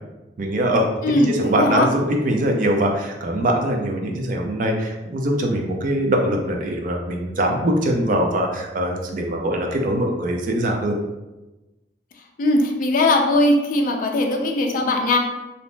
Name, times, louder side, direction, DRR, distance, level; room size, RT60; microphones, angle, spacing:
voice 1, 0.4-10.9, right 1 dB, 50° right, 1 dB, 0.4 m, -22 dB
voice 2, 1.0-1.9 12.4-15.2, left 2 dB, 50° left, 2 dB, 0.3 m, -19 dB
2.6 x 2.0 x 3.1 m, 1.1 s
head